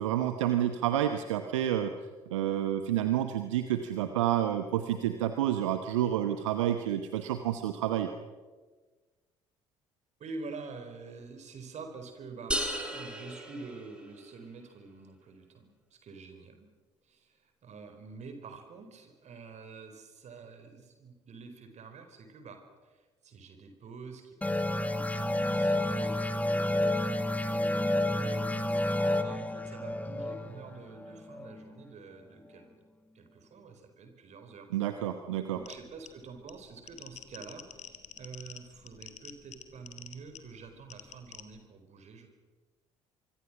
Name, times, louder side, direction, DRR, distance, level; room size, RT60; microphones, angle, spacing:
voice 1, 0.0-1.9 2.3-8.1 34.7-35.6, right 11 dB, 70° right, 8 dB, 1.1 m, -29 dB
voice 2, 10.2-12.6 12.9-16.7 17.0-32.8 33.1-34.7 35.5-42.3, right 4 dB, 45° right, 6 dB, 4.6 m, -47 dB
sound 1, 12.5-14.4, right 1 dB, 5° right, 4.3 m, -35 dB
sound 2, 24.4-31.7, left 1 dB, 10° left, 1.7 m, -30 dB
sound 3, 35.5-41.6, left 8 dB, 45° left, 2.4 m, -49 dB
25.0 x 24.5 x 6.2 m, 1.3 s
figure-of-eight pair, 50°, 16 cm